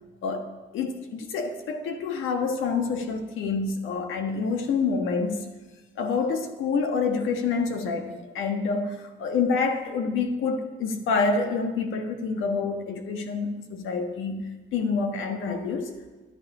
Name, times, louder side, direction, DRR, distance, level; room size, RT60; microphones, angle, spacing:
voice 1, 0.7-5.5 6.0-16.0, left 4 dB, 85° left, 5 dB, 1.5 m, -27 dB
12.5 x 10.5 x 4.9 m, 1.2 s
cardioid pair, 90°, 20 cm